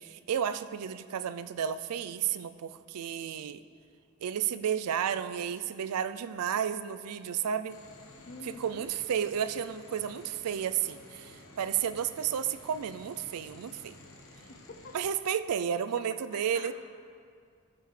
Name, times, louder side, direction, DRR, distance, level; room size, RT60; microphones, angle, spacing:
voice 1, 0.0-3.6 4.2-7.8 8.5-13.9 14.9-16.7, right 8 dB, 90° right, 13 dB, 0.4 m, -32 dB
sound 1, 7.7-15.1, left 1 dB, 65° left, 1.2 m, -53 dB
voice 2, 8.3-8.9 14.5-14.9 15.7-15.8 16.3-16.7, left 4 dB, 45° left, 7 dB, 0.5 m, -47 dB
14.5 x 7.0 x 3.3 m, 2.2 s
head